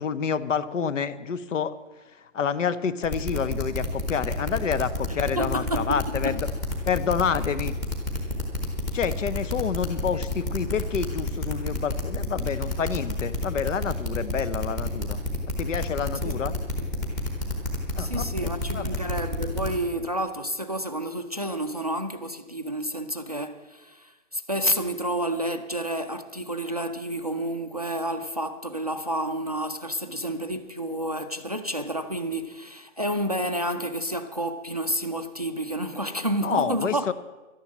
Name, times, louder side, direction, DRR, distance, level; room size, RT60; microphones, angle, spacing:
voice 1, 0.0-1.7 2.1-6.5 6.8-7.7 8.9-15.2 15.6-16.5 17.9-19.0 36.4-37.1, left 7 dB, 70° left, 0.9 m, -28 dB
sound 1, 3.0-19.7, left 2 dB, 15° left, 1.2 m, -29 dB
voice 2, 5.1-6.0 6.2-6.3 10.1-10.2 16.2-16.6 18.0-37.1, right 1 dB, 30° right, 0.4 m, -30 dB
12.0 x 10.5 x 7.3 m
hypercardioid pair, 175°, 39 cm